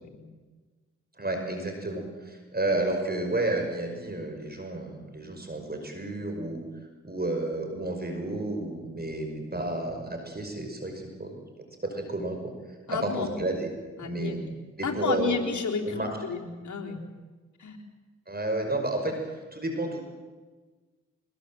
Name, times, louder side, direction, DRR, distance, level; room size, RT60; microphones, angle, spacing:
voice 1, 1.2-6.6 7.0-11.3 11.8-12.5 12.9-13.7 14.0-14.4 14.8-15.4 15.8-16.1 18.3-20.0, right 2 dB, 30° right, 4 dB, 5.7 m, -31 dB
voice 2, 12.9-13.3 14.0-14.5 14.8-17.0 17.6-17.8, left 5 dB, 75° left, 0 dB, 3.9 m, -31 dB
23.5 x 21.5 x 7.8 m, 1.3 s
cardioid pair, 50°, 30 cm